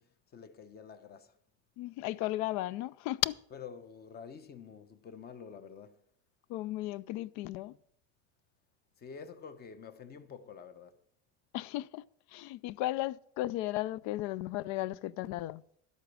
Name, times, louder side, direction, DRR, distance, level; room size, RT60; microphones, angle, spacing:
voice 1, 0.0-1.4 3.5-6.0 9.0-11.0, left 6 dB, 30° left, 0.9 m, -48 dB
voice 2, 1.8-3.4 6.5-7.8 11.5-15.6, left 16 dB, 65° left, 0.5 m, -35 dB
12.0 x 8.3 x 6.2 m
cardioid pair, 155°, 33 cm